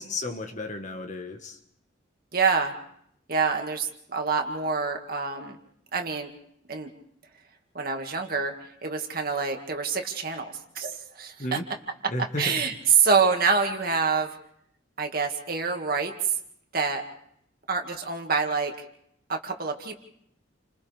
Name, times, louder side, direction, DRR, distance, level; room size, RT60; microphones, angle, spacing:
voice 1, 0.0-1.6 11.4-11.6 12.1-12.5, left 2 dB, 40° left, 5 dB, 1.5 m, -33 dB
voice 2, 2.3-2.7 3.3-5.6 5.9-6.3 6.7-6.9 7.7-8.5 8.8-11.6 12.4-14.4 15.0-16.1 16.7-17.0 17.7-18.7 19.3-19.9, right 5 dB, 50° right, 3 dB, 2.1 m, -26 dB
30.0 x 26.0 x 3.5 m, 0.72 s
head